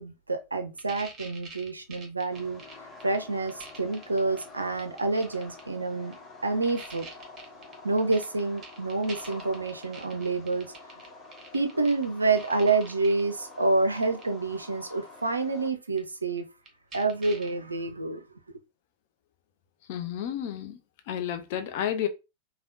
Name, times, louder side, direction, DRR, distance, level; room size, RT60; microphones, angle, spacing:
voice 1, 0.0-2.6 3.0-6.2 6.4-7.1 7.8-10.7 11.5-16.4 16.9-18.2, right 3 dB, 80° right, 0.4 m, -28 dB
sound 1, 0.8-3.2 3.5-4.4 4.8-5.6 6.1-6.2 6.6-12.0 12.4-13.2 14.0-14.2 16.0-16.1 16.4-16.5 16.7-17.5, right 3 dB, 25° right, 1.0 m, -45 dB
sound 2, 2.3-15.7, left 3 dB, 20° left, 0.8 m, -48 dB
voice 2, 19.9-20.8 21.1-22.1, left 10 dB, 50° left, 0.5 m, -31 dB
3.4 x 2.3 x 2.5 m
figure-of-eight pair, 90°, 0 cm